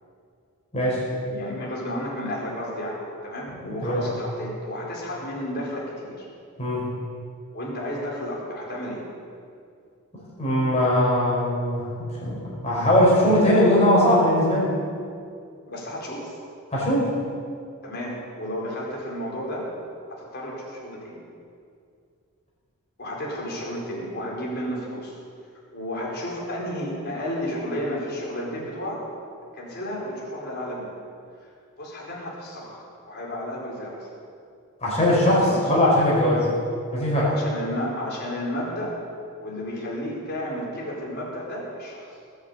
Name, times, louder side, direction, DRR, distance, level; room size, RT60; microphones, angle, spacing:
voice 1, 1.2-6.3 7.5-9.0 15.7-16.3 17.8-19.6 20.1-21.2 23.0-25.2 25.7-29.0 29.5-30.9 31.8-32.8 33.1-34.1 35.5-35.8 37.2-38.9 39.4-42.1, equal, 50° left, -4 dB, 4.8 m, -32 dB
voice 2, 3.6-4.0 6.6-6.8 10.4-12.4 12.6-14.7 16.7-17.1 34.8-36.5 36.9-37.3, left 1 dB, 30° left, -6 dB, 5.5 m, -20 dB
19.5 x 8.3 x 8.7 m, 2.3 s
head